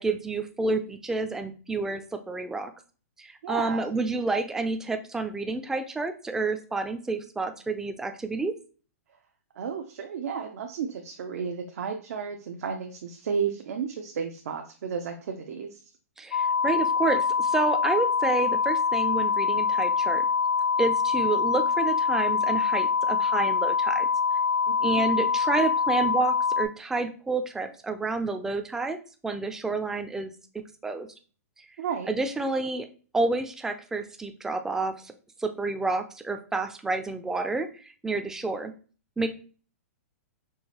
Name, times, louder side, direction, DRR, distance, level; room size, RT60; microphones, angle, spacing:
voice 1, 0.0-2.7 3.2-8.5 16.2-20.2 20.8-24.1 24.8-29.0 29.2-31.1 32.1-32.9 33.1-35.1 35.4-38.7 39.2-39.3, right 3 dB, 5° right, 7 dB, 0.3 m, -29 dB
voice 2, 3.4-3.9 9.6-15.9 24.7-25.0 31.8-32.1, right 6 dB, 70° right, 4 dB, 0.5 m, -33 dB
sound 1, 16.3-26.7, left 5 dB, 65° left, 0.7 m, -25 dB
4.7 x 2.5 x 2.9 m, 0.38 s
hypercardioid pair, 135°, 8 cm